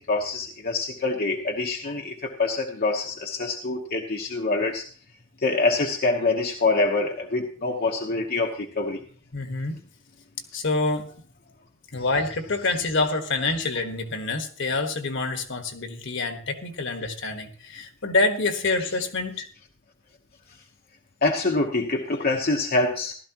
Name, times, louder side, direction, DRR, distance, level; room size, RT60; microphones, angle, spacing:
voice 1, 0.0-4.8 5.4-9.0 21.2-23.1, left 3 dB, 45° left, 1 dB, 1.0 m, -25 dB
voice 2, 9.3-9.8 10.5-11.1 11.9-19.5, left 3 dB, 60° left, 7 dB, 1.5 m, -26 dB
15.5 x 12.5 x 3.0 m, 0.43 s
head